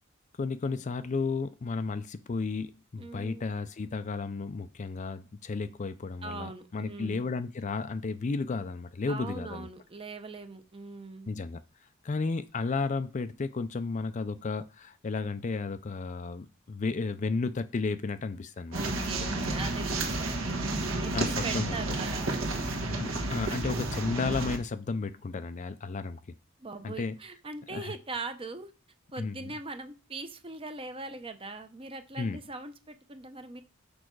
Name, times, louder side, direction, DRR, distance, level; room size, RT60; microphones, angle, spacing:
voice 1, 0.4-9.7 11.3-11.6 12.0-19.1 19.3-19.5 20.8-21.8 22.9-26.2 26.8-27.2 27.7-27.9 29.2-29.5 32.2-32.4, left 4 dB, 35° left, 0.4 m, -33 dB
voice 2, 3.0-3.5 6.2-7.3 9.1-11.3 18.7-20.6 21.0-22.9 26.6-28.7 29.1-33.6, right 3 dB, 25° right, 0.7 m, -41 dB
sound 1, 18.7-24.6, right 2 dB, 65° right, 1.4 m, -31 dB
6.4 x 5.5 x 4.6 m
head